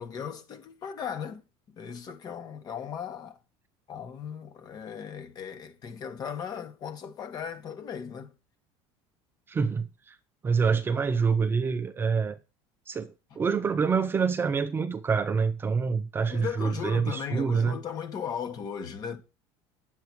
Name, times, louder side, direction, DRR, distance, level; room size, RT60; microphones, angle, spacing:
voice 1, 0.0-1.4 1.7-3.4 3.9-8.3 16.3-19.2, left 7 dB, 35° left, 1.6 m, -37 dB
voice 2, 9.5-10.2 10.4-12.4 12.9-13.1 13.4-17.8, right 5 dB, 20° right, 0.5 m, -26 dB
9.9 x 7.9 x 4.6 m
cardioid pair, 160°, 12 cm